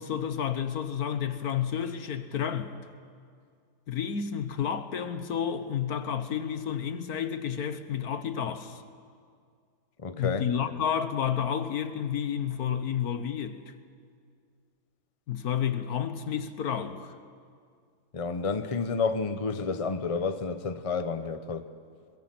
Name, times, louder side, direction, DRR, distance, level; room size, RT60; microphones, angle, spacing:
voice 1, 0.0-2.7 3.9-8.8 10.2-13.6 15.3-17.1, left 8 dB, 55° left, 1.4 m, -30 dB
voice 2, 10.0-10.7 18.1-21.7, left 4 dB, 40° left, 0.5 m, -30 dB
22.5 x 22.5 x 7.7 m
omnidirectional pair, 2.0 m